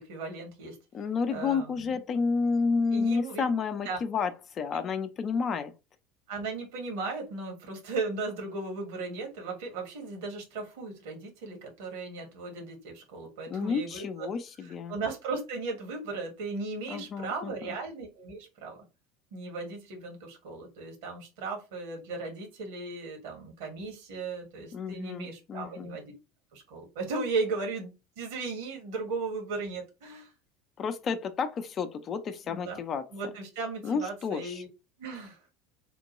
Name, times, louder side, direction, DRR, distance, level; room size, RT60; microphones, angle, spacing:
voice 1, 0.0-0.8 1.3-1.9 2.9-3.4 3.8-4.0 6.3-14.3 14.6-18.8 19.3-26.1 26.5-30.3 32.5-32.8 33.1-34.7 35.0-35.4, right 3 dB, 60° right, 1.3 m, -36 dB
voice 2, 0.9-5.7 13.5-14.9 16.9-17.8 24.7-26.0 30.8-33.0 33.8-34.6, left 5 dB, 35° left, 0.5 m, -30 dB
3.7 x 2.2 x 3.0 m
figure-of-eight pair, 70°, 0 cm